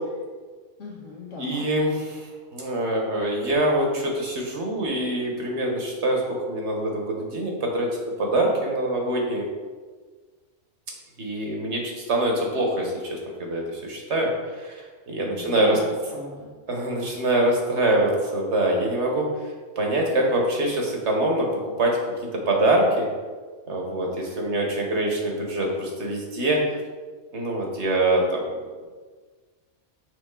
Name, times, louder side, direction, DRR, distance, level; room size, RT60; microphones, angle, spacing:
voice 1, 0.8-1.7 15.3-16.5, left 2 dB, 75° left, -2 dB, 1.7 m, -38 dB
voice 2, 1.4-2.2 2.5-7.9 8.2-9.4 11.2-14.3 14.6-15.8 16.7-19.2 19.8-21.9 22.5-23.1 23.7-26.6 27.3-28.5, right 1 dB, 65° right, 0 dB, 1.5 m, -24 dB
6.4 x 5.0 x 3.7 m, 1.4 s
omnidirectional pair, 1.3 m